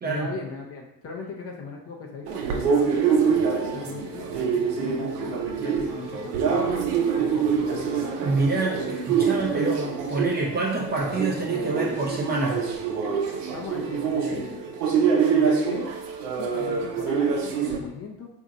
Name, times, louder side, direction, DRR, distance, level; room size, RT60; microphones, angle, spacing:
voice 1, 0.0-3.2 3.7-8.0 13.5-14.7 15.3-15.9 16.4-18.3, left 4 dB, 30° left, 0 dB, 0.5 m, -38 dB
sound 1, 2.3-17.8, right 6 dB, 70° right, 0.7 m, -25 dB
voice 2, 8.2-12.7, right 3 dB, 20° right, -2 dB, 0.5 m, -27 dB
2.6 x 2.4 x 4.0 m, 0.87 s
hypercardioid pair, 85°, 49 cm